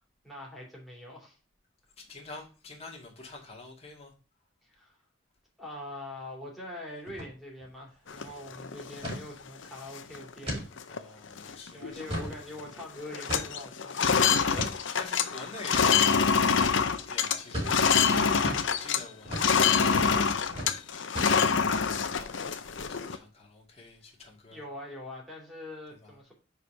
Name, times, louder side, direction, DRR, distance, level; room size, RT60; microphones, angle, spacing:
voice 1, 0.2-1.4 4.6-5.0 5.6-10.6 11.7-15.0 23.9-24.0 24.5-26.3, left 1 dB, ahead, 2.8 m, -44 dB
voice 2, 2.0-4.1 10.9-12.0 15.0-20.7 21.2-24.6 26.0-26.1, left 3 dB, 30° left, 2.2 m, -47 dB
sound 1, 7.1-7.3 7.6-7.7 8.1-8.3 9.0-9.2 9.7-9.8 10.5-10.7 11.2-11.3 11.8-12.4 13.3-13.7 14.5-14.8 15.7-15.9 16.6-16.8 17.5-17.8 18.4-18.7 19.2-19.5 19.9-20.2 20.5-20.7 21.1-21.6, equal, 25° right, 3.6 m, -35 dB
sound 2, 8.1-9.2 9.6-9.7 10.0-10.3 10.8-11.0 11.3-12.3 12.6-12.8 13.1-19.0 19.3-23.2, left 6 dB, 70° left, 0.7 m, -26 dB
5.0 x 4.9 x 5.6 m
head